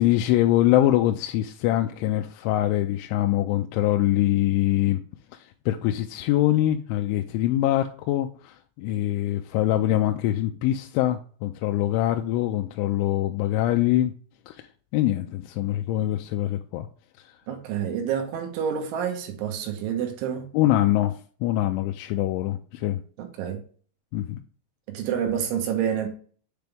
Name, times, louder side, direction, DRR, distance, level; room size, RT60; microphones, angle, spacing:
voice 1, 0.0-5.0 5.3-14.1 14.5-14.6 14.9-16.9 17.2-17.3 20.5-23.0 24.1-24.4, left 14 dB, 85° left, 2.9 m, -24 dB
voice 2, 17.5-20.5 23.2-23.6 24.9-26.1, right 8 dB, 75° right, 3.5 m, -28 dB
8.2 x 3.8 x 3.4 m
omnidirectional pair, 5.7 m